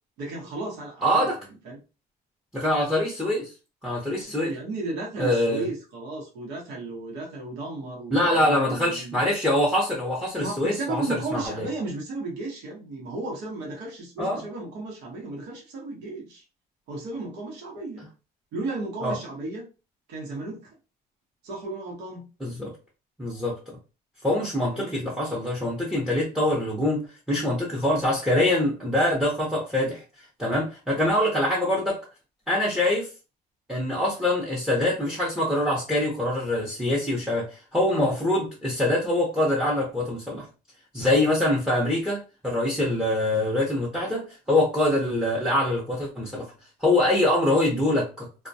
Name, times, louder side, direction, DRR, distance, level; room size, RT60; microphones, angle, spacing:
voice 1, 0.2-1.3 1.6-1.8 4.2-9.2 10.4-16.4 16.9-18.0 18.5-19.7 20.1-20.7 21.4-22.3 24.7-24.9, right 2 dB, 85° right, 0.9 m, -34 dB
voice 2, 1.0-1.4 2.5-3.5 3.8-4.5 5.2-5.7 8.1-11.7 14.2-14.4 19.0-19.2 22.4-22.7 23.2-23.6 24.2-27.0 27.3-30.0 30.4-32.0 32.5-33.1 33.7-40.5 40.9-46.4 46.8-48.3, left 1 dB, 5° right, 0.6 m, -24 dB
2.2 x 2.1 x 2.6 m
cardioid pair, 110°, 17 cm